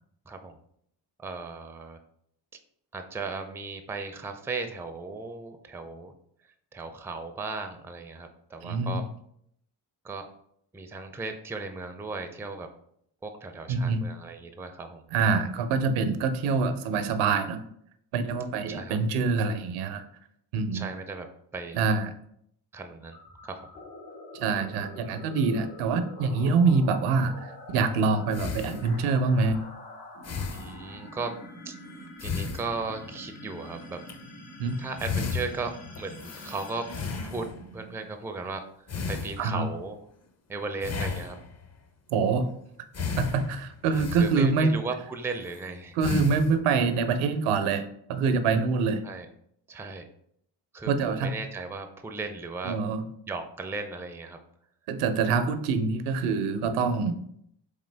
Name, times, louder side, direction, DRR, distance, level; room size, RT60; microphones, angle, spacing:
voice 1, 0.3-0.6 1.2-2.0 2.9-6.1 6.7-9.0 10.0-10.3 10.7-12.7 13.2-15.0 18.7-19.0 20.7-21.3 21.5-21.9 22.7-23.2 23.4-23.7 30.5-31.3 31.7-31.8 32.2-34.0 34.8-36.9 37.2-38.6 39.1-40.0 40.5-41.4 43.9-46.0 49.0-49.3 49.7-50.1 50.7-52.7 53.3-54.4, right 3 dB, 5° right, 6 dB, 0.4 m, -36 dB
voice 2, 8.6-9.0 13.7-14.0 15.1-17.6 18.1-20.0 20.5-20.9 21.7-22.1 24.3-29.5 34.6-34.7 39.4-39.7 42.1-42.5 43.2-44.8 46.0-49.0 50.9-51.3 52.6-53.0 54.9-57.2, right 4 dB, 75° right, 9 dB, 0.7 m, -25 dB
sound 1, 23.1-38.2, left 1 dB, 75° left, 1.5 m, -45 dB
sound 2, 27.2-27.3 28.3-29.3 30.2-31.0 32.1-33.4 33.9-34.1 34.7-34.8 35.0-37.8 38.9-39.8 40.8-41.7 42.9-44.8 45.4-45.7 46.0-46.6, left 5 dB, 30° left, 0.7 m, -34 dB
3.7 x 3.6 x 3.3 m, 0.71 s
supercardioid pair, 60°, 50 cm